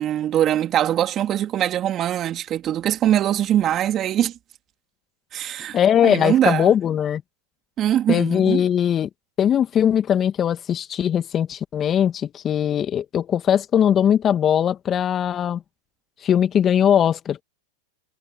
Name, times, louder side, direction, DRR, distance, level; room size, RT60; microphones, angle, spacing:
voice 1, 0.0-4.3 5.3-6.7 7.8-8.6, right 11 dB, 35° right, 3.2 m, -22 dB
voice 2, 5.7-7.2 8.1-9.1 9.4-15.6 16.2-17.4, left 9 dB, 30° left, 1.9 m, -20 dB
hypercardioid pair, 100°, 0 cm